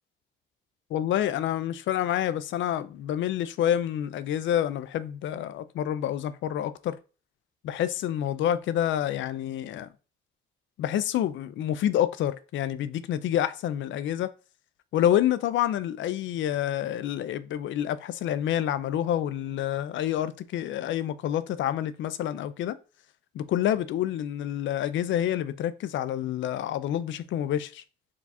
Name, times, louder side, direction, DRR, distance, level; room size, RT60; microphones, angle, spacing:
voice 1, 0.9-7.0 7.6-9.9 10.8-14.3 14.9-22.8 23.3-27.8, left 11 dB, 70° left, 0.5 m, -28 dB
4.6 x 2.4 x 4.1 m
cardioid pair, 90°, 20 cm